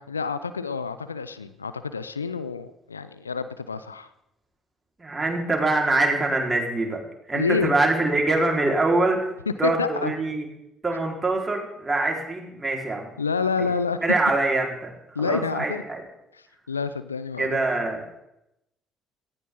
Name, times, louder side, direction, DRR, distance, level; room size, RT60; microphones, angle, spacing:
voice 1, 0.0-4.1 7.3-7.7 9.5-10.1 13.2-14.0 15.2-15.8 16.3-17.6, left 5 dB, 90° left, 13 dB, 0.5 m, -28 dB
voice 2, 5.0-7.0 7.3-9.3 9.6-10.5 10.8-13.1 14.0-14.9 15.2-16.0 17.4-18.0, right 2 dB, 20° right, 0 dB, 4.4 m, -24 dB
17.5 x 15.0 x 3.9 m, 0.84 s
figure-of-eight pair, 50°, 0 cm